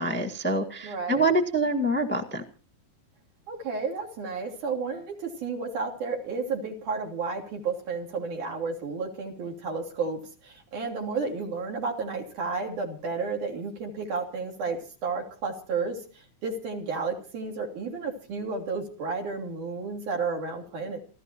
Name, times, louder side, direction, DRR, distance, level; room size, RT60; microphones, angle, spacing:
voice 1, 0.0-2.4, right 1 dB, 5° left, 1 dB, 0.9 m, -26 dB
voice 2, 0.8-1.2 3.5-21.0, right 4 dB, 75° right, 0 dB, 4.6 m, -32 dB
29.5 x 13.5 x 3.0 m, 0.39 s
omnidirectional pair, 3.5 m